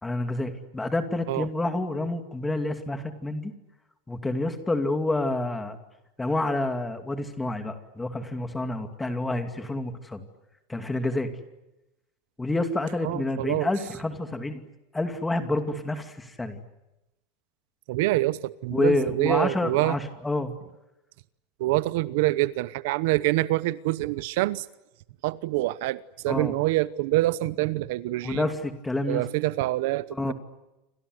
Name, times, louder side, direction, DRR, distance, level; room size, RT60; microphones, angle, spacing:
voice 1, 0.0-3.5 4.1-5.8 6.2-10.2 10.7-11.3 12.4-14.7 14.9-16.6 18.7-20.5 26.3-26.5 28.2-29.2 30.1-30.3, left 2 dB, 5° left, 2.5 m, -28 dB
voice 2, 13.0-13.7 17.9-20.0 21.6-24.7 25.2-28.5 29.1-30.3, right 18 dB, 60° right, 0.9 m, -26 dB
28.5 x 26.0 x 8.0 m
supercardioid pair, 175°, 0 cm